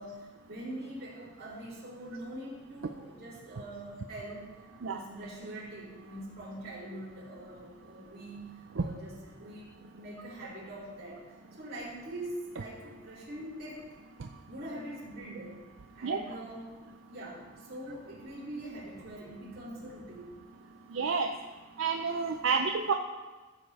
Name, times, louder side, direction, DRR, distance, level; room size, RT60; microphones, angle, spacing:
voice 1, 0.0-4.5 4.8-9.7 9.9-13.9 14.4-15.6 15.9-16.7 17.1-20.4, right 1 dB, 55° right, -8 dB, 3.0 m, -43 dB
voice 2, 20.9-21.3 21.8-22.9, right 5 dB, 80° right, 4 dB, 0.6 m, -29 dB
14.5 x 6.9 x 4.2 m, 1.3 s
head